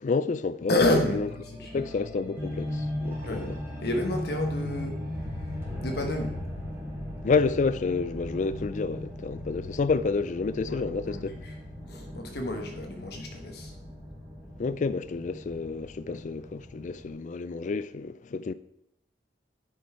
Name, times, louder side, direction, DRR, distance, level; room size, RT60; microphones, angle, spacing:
voice 1, 0.0-0.8 1.1-1.3 1.7-3.5 7.2-11.3 14.6-18.5, left 4 dB, 45° left, 0.4 m, -29 dB
voice 2, 0.7-1.8 3.2-6.3 10.7-11.6 11.9-13.7, left 1 dB, 60° left, 1.1 m, -30 dB
sound 1, 0.8-17.1, left 1 dB, 15° right, 2.5 m, -38 dB
10.0 x 5.4 x 4.4 m
head